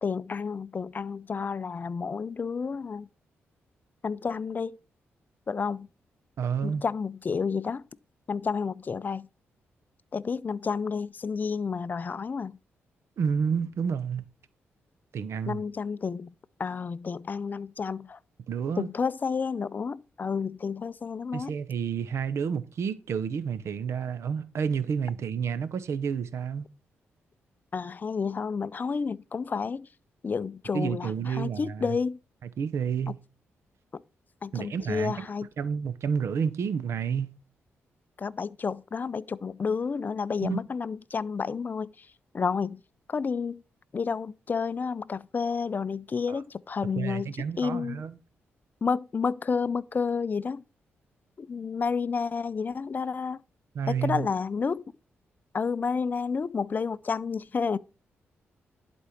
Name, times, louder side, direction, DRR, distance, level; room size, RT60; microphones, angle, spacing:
voice 1, 0.0-3.1 4.0-4.8 5.5-5.9 6.6-7.9 8.3-9.3 10.1-12.6 15.5-16.3 16.6-18.2 18.8-21.6 27.7-29.9 30.2-32.2 33.1-33.2 33.9-34.0 34.4-35.5 38.2-42.1 42.3-42.8 43.1-43.6 43.9-48.0 48.8-50.6 51.4-53.4 53.9-54.8 55.5-57.8, left 5 dB, 40° left, 0.4 m, -30 dB
voice 2, 6.4-6.8 13.2-14.3 15.1-15.6 18.5-18.9 21.3-26.7 30.7-31.9 32.6-33.2 34.5-35.3 35.6-37.3 40.4-40.6 46.3-46.4 46.9-48.1 53.7-54.3, right 6 dB, 70° right, 0.8 m, -30 dB
11.0 x 4.4 x 5.0 m
cardioid pair, 75°, 5 cm